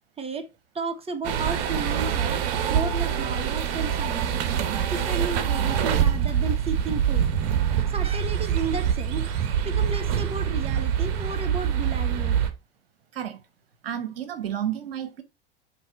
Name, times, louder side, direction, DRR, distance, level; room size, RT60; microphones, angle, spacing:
voice 1, 0.2-0.5 0.7-2.4 2.7-4.5 4.9-7.3 7.8-12.4, right 4 dB, 20° right, 1.6 m, -33 dB
sound 1, 1.2-12.5, right 8 dB, 55° right, 1.2 m, -25 dB
voice 2, 13.8-15.2, right 10 dB, 75° right, 1.0 m, -31 dB
9.1 x 3.3 x 4.4 m
hypercardioid pair, 90°, 29 cm